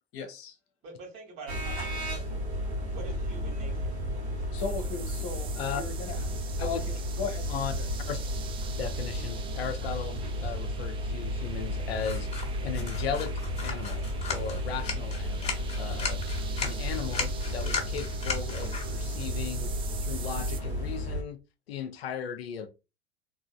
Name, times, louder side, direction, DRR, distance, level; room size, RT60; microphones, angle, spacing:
voice 1, 0.1-0.6 4.5-6.3 6.7-7.9, left 5 dB, 40° left, 1.0 m, -37 dB
voice 2, 0.8-2.4 2.9-3.9, right 3 dB, 40° right, 1.7 m, -46 dB
sound 1, 1.5-21.2, equal, 75° right, 1.1 m, -33 dB
sound 2, 4.6-20.6, right 7 dB, 15° right, 0.3 m, -46 dB
voice 3, 8.8-13.3 13.6-14.0 14.3-16.2 16.6-21.4 21.7-22.7, left 7 dB, 65° left, 0.5 m, -36 dB
sound 3, 11.9-21.0, left 5 dB, 20° left, 1.2 m, -38 dB
3.8 x 2.7 x 2.4 m
figure-of-eight pair, 75°, 33 cm